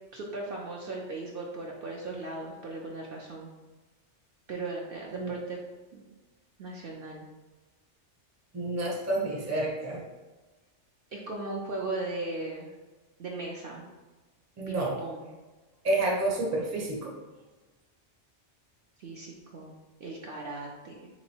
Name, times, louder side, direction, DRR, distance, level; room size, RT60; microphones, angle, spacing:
voice 1, 0.1-3.5 4.5-5.6 5.9-6.0 6.6-7.3 11.1-12.7 13.2-13.9 14.7-15.3 19.0-19.7 20.0-21.1, right 2 dB, 55° right, -2 dB, 0.7 m, -37 dB
voice 2, 8.5-10.0 14.6-15.0 15.8-17.1, right 2 dB, 15° right, -2 dB, 0.6 m, -29 dB
3.7 x 2.9 x 4.3 m, 1.2 s
omnidirectional pair, 1.2 m